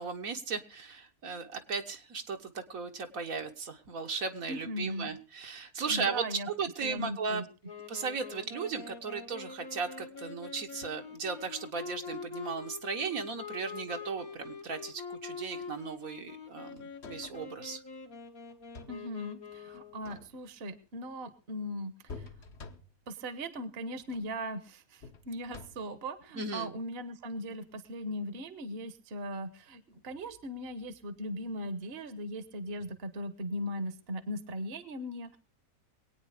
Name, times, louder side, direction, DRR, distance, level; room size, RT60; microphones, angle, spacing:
voice 1, 0.0-7.4 7.9-17.8 26.4-26.7, right 5 dB, 75° right, 5 dB, 1.8 m, -36 dB
voice 2, 4.5-5.1 5.9-6.5 6.8-7.4 18.9-22.3 23.1-35.4, equal, 45° right, 13 dB, 1.3 m, -39 dB
Wind instrument woodwind instrument, 7.6-20.1, left 5 dB, 75° left, 2.2 m, -45 dB
sound 1, 16.8-17.6 18.5-19.1 19.9-20.6 22.1-23.1 24.0-24.4 25.0-26.0 27.7-27.8, left 4 dB, 50° left, 1.3 m, -49 dB
22.5 x 9.1 x 4.9 m, 0.34 s
omnidirectional pair, 1.5 m